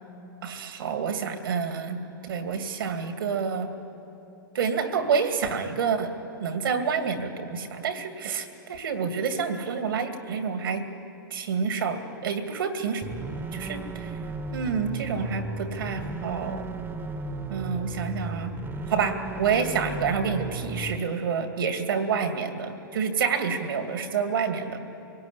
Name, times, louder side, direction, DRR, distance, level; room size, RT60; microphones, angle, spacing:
voice 1, 0.4-3.7 4.5-6.1 6.4-10.9 11.3-13.0 13.5-14.2 14.5-16.7 17.5-18.5 18.9-24.8, right 6 dB, 80° right, 6 dB, 2.5 m, -28 dB
sound 1, 13.0-21.0, right 3 dB, 15° right, 1.4 m, -35 dB
24.5 x 18.0 x 10.0 m, 2.9 s
hypercardioid pair, 120°, 12 cm